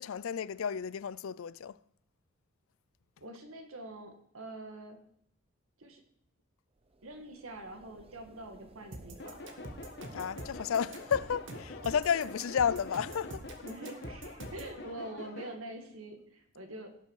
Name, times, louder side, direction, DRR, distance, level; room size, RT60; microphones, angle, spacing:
voice 1, 0.0-1.8 10.1-13.5, left 7 dB, 80° left, 0.4 m, -32 dB
voice 2, 3.2-5.0 5.8-6.0 7.0-9.4 13.6-16.9, right 1 dB, 85° right, 1.9 m, -45 dB
sound 1, 6.7-13.3, right 2 dB, 30° right, 0.6 m, -57 dB
sound 2, 8.9-14.7, right 1 dB, 60° right, 1.6 m, -45 dB
sound 3, 9.2-15.5, left 2 dB, 55° left, 1.4 m, -46 dB
17.0 x 6.9 x 4.7 m
head